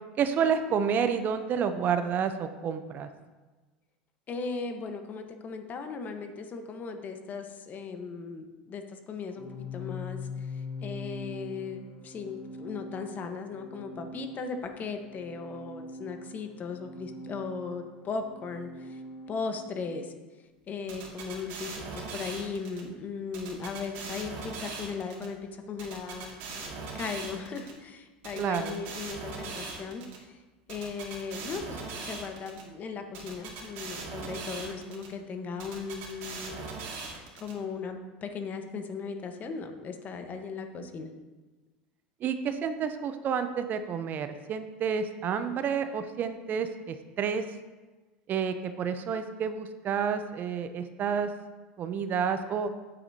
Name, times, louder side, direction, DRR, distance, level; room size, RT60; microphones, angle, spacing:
voice 1, 0.2-3.1 28.4-28.8 42.2-47.4 48.3-51.3 51.8-52.7, right 7 dB, 40° right, 10 dB, 0.6 m, -29 dB
voice 2, 4.3-19.0 19.3-20.1 20.7-30.4 30.7-36.7 37.4-41.1, left 5 dB, 35° left, 6 dB, 1.1 m, -37 dB
Organ, 9.3-20.1, left 3 dB, 60° left, 3.0 m, -43 dB
sound 1, 20.9-22.8 23.3-25.3 25.8-27.7 28.2-30.2 30.7-32.6 33.1-35.1 35.6-37.5, right 4 dB, 60° right, 2.2 m, -40 dB
9.3 x 8.4 x 2.8 m, 1.2 s
hypercardioid pair, 90°, 5 cm